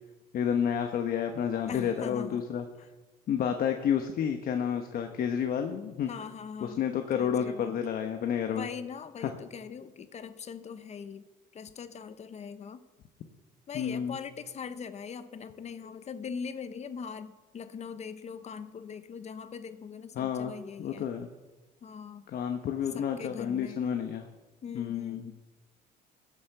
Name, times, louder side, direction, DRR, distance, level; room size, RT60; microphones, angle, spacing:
voice 1, 0.3-2.7 3.3-6.1 6.6-8.7 9.2-9.3 13.7-14.2 20.2-20.5 20.8-21.3 22.3-24.3 24.7-25.2, left 8 dB, 60° left, 6 dB, 1.1 m, -30 dB
voice 2, 1.7-2.4 6.1-6.8 7.1-7.8 8.5-11.2 11.5-12.8 13.7-21.1 21.8-22.2 22.9-23.8 24.6-25.4, left 6 dB, 40° left, 12 dB, 0.8 m, -41 dB
15.5 x 8.3 x 6.8 m, 1.2 s
cardioid pair, 110°, 17 cm